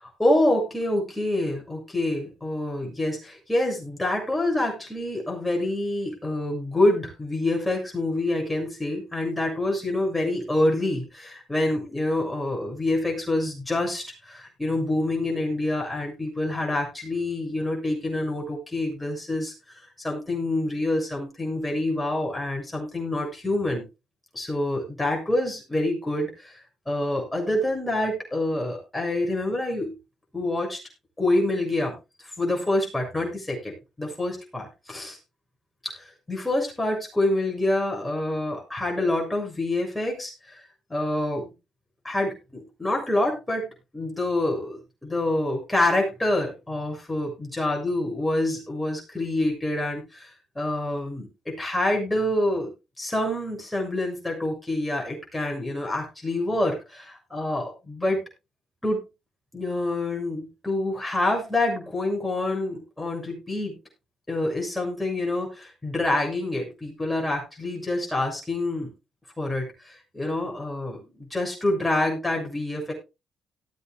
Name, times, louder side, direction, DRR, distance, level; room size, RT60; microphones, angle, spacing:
voice 1, 0.2-19.5 20.0-23.9 24.3-26.6 26.9-30.0 30.3-30.8 31.2-32.0 32.4-35.2 35.8-36.0 36.3-40.6 40.9-41.5 42.0-50.3 50.6-52.7 53.0-58.2 58.8-59.0 59.5-63.8 64.3-68.9 69.4-72.9, left 1 dB, 10° left, 0 dB, 6.8 m, -27 dB
18.5 x 8.4 x 2.3 m, 0.27 s
cardioid pair, 90°, 0 cm